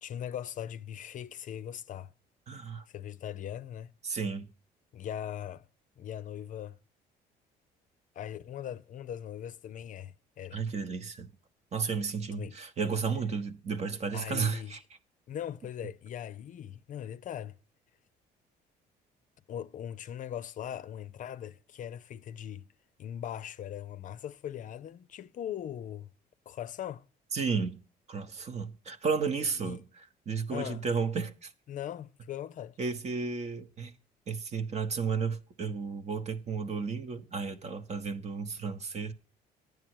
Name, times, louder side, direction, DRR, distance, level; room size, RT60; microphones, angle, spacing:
voice 1, 0.0-2.1 2.9-3.9 4.9-5.6 6.0-6.8 8.2-10.6 12.3-12.6 14.1-14.7 15.3-17.6 19.5-22.6 23.0-26.1 26.5-27.0 29.6-29.8 30.5-30.8 31.7-32.8, left 10 dB, 50° left, 0.6 m, -40 dB
voice 2, 2.5-2.8 4.0-4.5 10.5-11.3 11.7-14.8 27.3-27.8 28.1-31.5 32.8-33.9 34.3-39.1, right 5 dB, 40° right, 1.0 m, -33 dB
10.5 x 9.3 x 4.6 m
cardioid pair, 110°, 17 cm